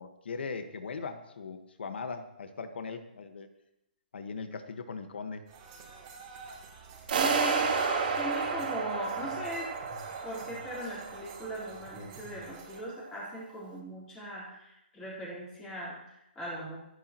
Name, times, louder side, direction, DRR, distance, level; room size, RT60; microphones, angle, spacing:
voice 1, 0.0-3.5 4.1-5.5, left 4 dB, 75° left, 7 dB, 1.6 m, -39 dB
sound 1, 5.5-12.8, right 3 dB, 25° right, 3.0 m, -49 dB
voice 2, 7.1-9.7 10.2-16.8, equal, 10° left, -7 dB, 4.2 m, -39 dB
sound 2, 7.1-12.0, right 5 dB, 60° right, 3.1 m, -31 dB
28.0 x 9.7 x 3.1 m, 0.83 s
hypercardioid pair, 170°, 6 cm